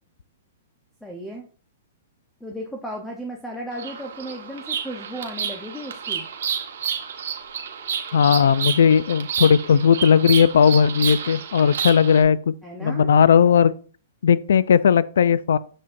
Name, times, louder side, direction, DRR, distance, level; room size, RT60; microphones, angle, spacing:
voice 1, 1.0-1.5 2.4-6.3 12.6-13.1, equal, 5° left, 0.8 m, -35 dB
Bird vocalization bird call bird song, 3.7-12.2, right 8 dB, 70° right, 1.3 m, -30 dB
voice 2, 8.1-12.5 12.8-13.7 14.2-15.6, left 7 dB, 80° left, 0.4 m, -17 dB
7.3 x 6.5 x 2.6 m
hypercardioid pair, 150°, 0 cm